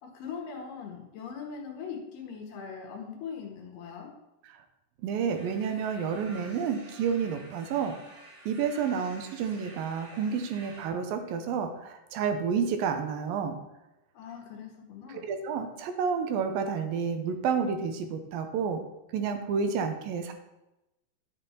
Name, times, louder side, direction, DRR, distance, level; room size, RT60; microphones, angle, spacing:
voice 1, 0.0-4.1 14.1-15.3, left 6 dB, 70° left, 1 dB, 2.9 m, -41 dB
voice 2, 5.0-8.0 8.5-13.6 15.1-18.8 19.1-20.3, right 6 dB, 75° right, 7 dB, 2.6 m, -30 dB
sound 1, 5.3-10.9, right 2 dB, 45° right, 3.3 m, -50 dB
10.5 x 7.3 x 4.3 m, 0.95 s
omnidirectional pair, 4.2 m